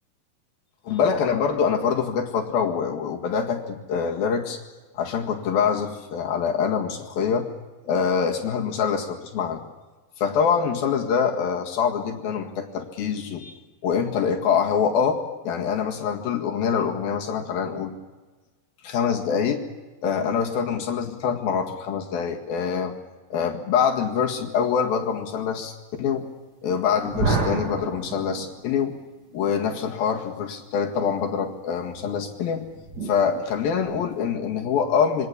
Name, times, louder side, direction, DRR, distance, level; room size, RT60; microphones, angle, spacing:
voice 1, 0.9-4.6 4.9-7.5 7.8-9.6 10.2-13.5 13.8-18.0 18.8-19.6 20.0-23.0 23.3-26.3 26.6-29.0 29.3-32.7 33.0-35.3, left 6 dB, 65° left, 2 dB, 3.6 m, -25 dB
sound 1, 27.0-29.0 31.9-34.3, right 3 dB, 30° right, 2.4 m, -30 dB
27.0 x 23.0 x 7.0 m, 1.3 s
omnidirectional pair, 4.7 m